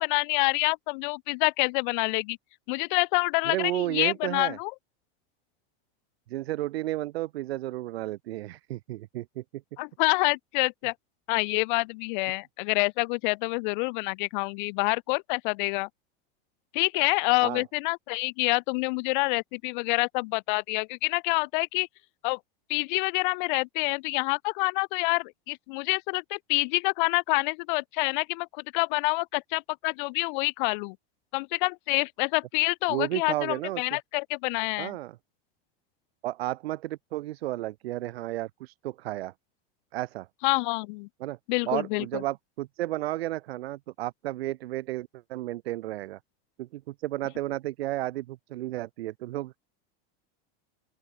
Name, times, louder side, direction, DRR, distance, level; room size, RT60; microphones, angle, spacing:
voice 1, 0.0-2.4 2.7-4.7 9.8-10.9 11.3-15.9 16.7-21.9 22.2-22.4 22.7-28.5 28.7-30.9 31.3-34.9 40.4-41.1 41.5-42.0, left 29 dB, 55° left, 1.7 m, -27 dB
voice 2, 3.4-4.6 6.3-9.4 17.4-17.6 32.9-34.0 34.8-35.2 36.2-39.3 39.9-40.3 41.2-41.4 41.6-46.2 46.6-49.6, right 16 dB, 85° right, 5.2 m, -32 dB
open air
supercardioid pair, 165°, 30 cm